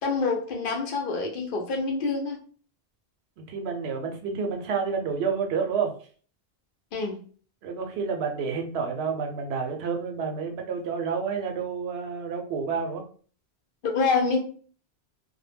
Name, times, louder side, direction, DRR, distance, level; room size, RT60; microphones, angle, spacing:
voice 1, 0.0-2.4 6.9-7.2 13.8-14.4, left 4 dB, 60° left, 2 dB, 0.7 m, -26 dB
voice 2, 3.4-6.0 7.6-13.0, right 5 dB, 80° right, 3 dB, 0.8 m, -29 dB
2.1 x 2.0 x 3.3 m, 0.43 s
omnidirectional pair, 1.1 m